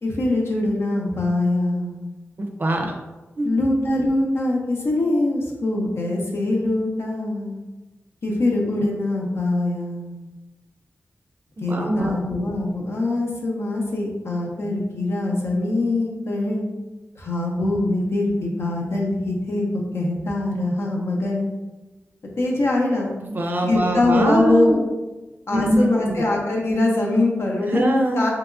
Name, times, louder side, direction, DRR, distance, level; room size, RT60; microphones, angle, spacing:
voice 1, 0.0-2.2 3.4-7.6 8.2-10.2 11.6-16.6 17.2-21.5 22.4-23.1 23.6-24.8 25.5-27.8 28.1-28.3, left 2 dB, 65° left, -1 dB, 0.7 m, -23 dB
voice 2, 2.4-2.9 3.4-3.7 11.7-12.2 23.2-24.8 25.5-26.3 27.6-28.2, right 1 dB, 40° right, 3 dB, 0.4 m, -22 dB
3.4 x 2.9 x 2.5 m, 1.1 s
wide cardioid pair, 130°, 5 cm